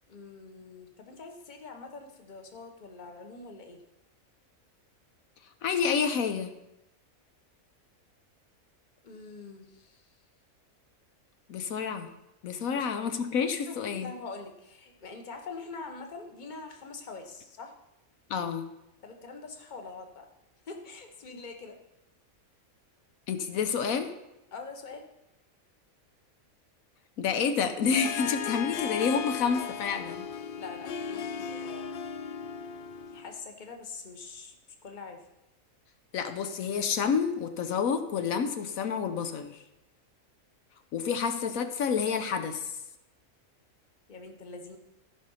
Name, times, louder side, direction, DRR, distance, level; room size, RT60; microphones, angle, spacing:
voice 1, 0.1-3.8 9.0-10.1 12.7-12.8 13.7-17.7 19.0-20.3 20.7-21.8 24.5-25.0 30.6-31.9 33.1-34.5 34.8-35.2 44.1-44.8, left 4 dB, 35° left, 4 dB, 1.2 m, -44 dB
voice 2, 5.6-6.5 11.5-12.1 12.4-14.1 18.3-18.7 23.3-24.1 27.2-30.2 36.1-39.6 40.9-42.7, left 6 dB, 80° left, 8 dB, 1.2 m, -29 dB
Harp, 27.9-33.4, left 7 dB, 60° left, 0.6 m, -36 dB
13.5 x 5.6 x 5.5 m, 0.92 s
omnidirectional pair, 1.4 m